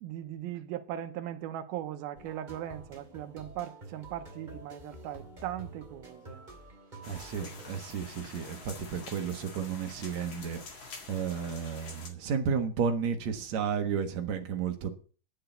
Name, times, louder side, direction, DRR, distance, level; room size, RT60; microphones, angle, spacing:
voice 1, 0.0-6.4, right 12 dB, 85° right, 2.8 m, -39 dB
sound 1, 2.1-7.8, right 2 dB, 15° right, 1.7 m, -48 dB
sound 2, 7.0-12.1, left 4 dB, 40° left, 2.1 m, -47 dB
voice 2, 7.1-14.9, right 6 dB, 60° right, 2.3 m, -33 dB
10.0 x 6.7 x 7.9 m
omnidirectional pair, 4.2 m